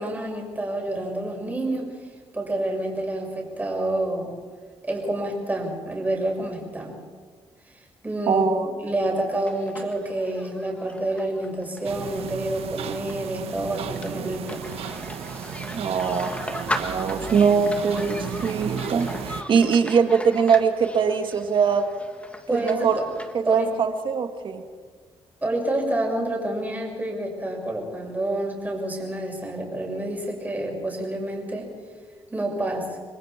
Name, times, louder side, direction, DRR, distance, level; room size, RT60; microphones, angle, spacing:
voice 1, 0.0-2.0 2.3-4.4 4.8-7.0 7.7-14.7 22.5-23.0 23.4-23.7 25.4-31.7 32.3-32.9, right 1 dB, 15° right, -1 dB, 6.2 m, -28 dB
voice 2, 8.3-8.7 15.7-21.8 22.6-23.0 23.3-24.6, right 6 dB, 55° right, 6 dB, 2.0 m, -22 dB
sound 1, 9.2-23.3, left 1 dB, 10° left, 1.8 m, -38 dB
sound 2, 11.8-19.4, right 8 dB, 80° right, 1.3 m, -34 dB
29.0 x 22.0 x 4.5 m, 1.6 s
cardioid pair, 120°, 10 cm